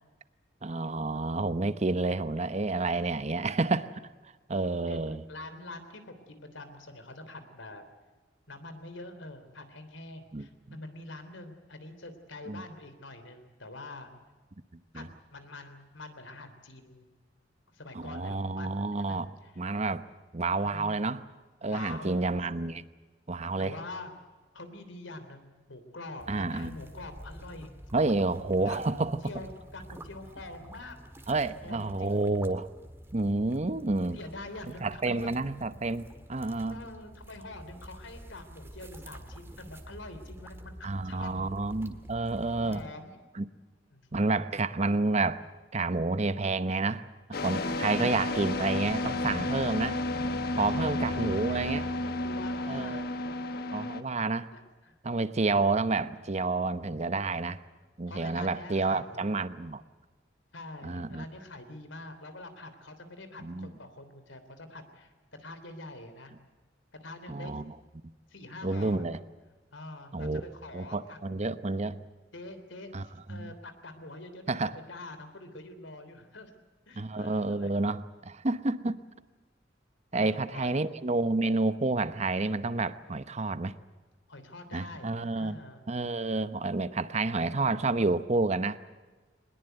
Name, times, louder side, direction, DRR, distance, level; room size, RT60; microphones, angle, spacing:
voice 1, 0.6-3.9 4.5-5.2 10.3-10.8 12.5-12.6 14.9-15.1 17.9-19.3 19.6-20.0 20.3-21.2 21.6-22.8 23.3-23.7 26.3-26.8 27.9-29.2 31.3-32.7 33.1-34.2 34.8-36.8 40.8-42.8 43.3-43.5 44.1-45.4 45.7-49.9 50.6-51.8 52.7-53.1 53.7-54.5 55.0-57.6 58.0-59.8 60.8-61.2 63.4-63.7 67.3-67.7 68.6-69.2 70.1-70.4 70.7-72.0 72.9-73.5 74.5-74.8 77.0-79.0 80.1-83.7 84.7-85.6 85.9-88.8, right 3 dB, 35° right, 0.8 m, -29 dB
voice 2, 5.3-7.8 8.5-14.1 14.9-15.1 15.3-17.1 17.7-19.7 20.6-21.1 21.6-22.3 23.6-24.1 24.5-27.7 28.6-31.0 31.6-32.2 34.1-35.3 36.7-41.7 42.6-43.2 43.9-44.5 47.8-48.1 50.6-51.9 52.2-53.4 54.5-55.0 55.4-55.7 58.1-59.4 60.5-65.1 65.4-66.3 67.0-67.6 68.3-69.1 69.7-71.5 72.3-76.5 76.9-77.8 80.1-80.9 84.3-85.8, left 2 dB, 85° left, 3.3 m, -45 dB
sound 1, 26.2-42.8, equal, 15° right, 1.7 m, -49 dB
sound 2, 47.3-54.0, left 2 dB, 55° left, 1.3 m, -32 dB
21.5 x 21.0 x 8.0 m
head